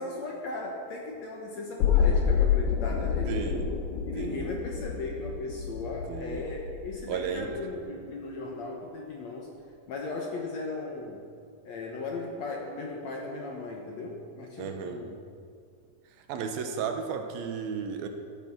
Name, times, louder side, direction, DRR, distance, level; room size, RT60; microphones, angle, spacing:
voice 1, 0.0-3.3 4.1-9.5 9.9-11.2 11.6-15.2, left 2 dB, 60° left, 1 dB, 2.0 m, -37 dB
sound 1, 1.8-7.8 8.1-8.2, left 7 dB, 80° left, 2.9 m, -28 dB
voice 2, 3.3-3.7 4.1-4.5 6.1-6.5 7.1-7.5 14.6-15.0 16.3-18.1, right 6 dB, 75° right, 5 dB, 2.8 m, -34 dB
14.5 x 11.5 x 6.0 m, 2.2 s
omnidirectional pair, 4.4 m